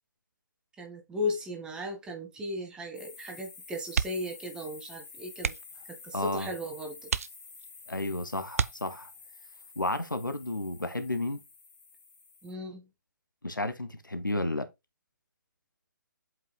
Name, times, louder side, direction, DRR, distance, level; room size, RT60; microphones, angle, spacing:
voice 1, 0.8-5.5 6.0-7.1 12.4-12.9, left 2 dB, 10° right, 1.3 m, -36 dB
sound 1, 2.9-12.5, left 4 dB, 15° left, 2.1 m, -50 dB
sound 2, 3.9-4.4 4.7-4.9 5.3-5.8 6.5-6.6 7.0-7.8 8.5-9.3 10.9-11.2 11.5-11.6, right 6 dB, 45° right, 0.4 m, -32 dB
voice 2, 6.1-6.5 7.9-9.1 9.8-11.4 13.4-14.7, left 2 dB, 85° left, 1.3 m, -32 dB
7.9 x 5.3 x 2.2 m
figure-of-eight pair, 135°, 10 cm